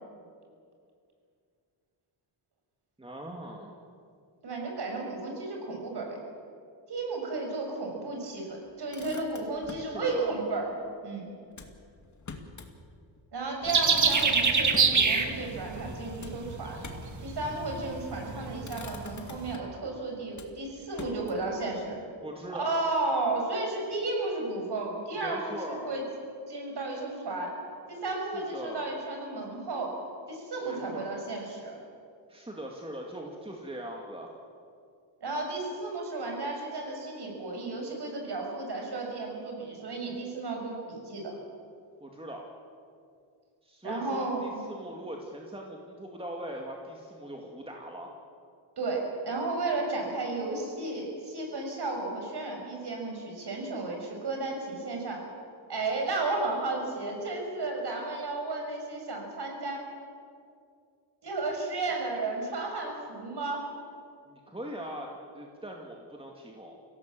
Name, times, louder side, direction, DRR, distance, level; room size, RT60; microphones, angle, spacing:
voice 1, 3.0-3.7 9.7-10.4 22.2-22.8 25.1-25.9 28.2-29.0 30.6-31.2 32.3-34.3 42.0-42.5 43.6-48.2 64.3-66.8, right 1 dB, 10° right, 0 dB, 2.2 m, -41 dB
voice 2, 4.4-6.2 6.9-10.7 11.0-11.3 13.3-16.8 17.2-22.0 22.5-26.0 26.5-27.5 27.9-29.9 30.3-31.8 35.2-41.3 43.8-44.6 48.8-55.2 55.7-59.8 61.2-63.6, right 3 dB, 55° right, 1 dB, 6.3 m, -33 dB
Motor vehicle (road), 8.7-9.9 11.5-12.8 13.2-13.3 13.6-15.0 16.2-17.2 18.0-18.3 18.6-19.8 20.3-21.5, left 4 dB, 40° left, 2.5 m, -46 dB
sound 1, 13.6-19.5, right 5 dB, 40° right, 2.0 m, -27 dB
25.0 x 17.0 x 7.6 m, 2.4 s
cardioid pair, 105°, 46 cm